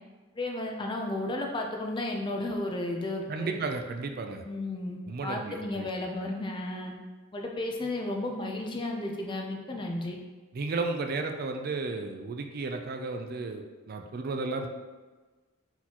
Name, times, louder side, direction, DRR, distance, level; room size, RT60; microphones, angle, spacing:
voice 1, 0.3-3.5 4.4-6.9 7.3-10.2, left 2 dB, 25° left, 1 dB, 0.5 m, -33 dB
voice 2, 3.3-4.4 5.1-5.9 10.5-14.7, right 3 dB, 50° right, 5 dB, 0.4 m, -33 dB
4.2 x 3.9 x 2.9 m, 1.3 s
head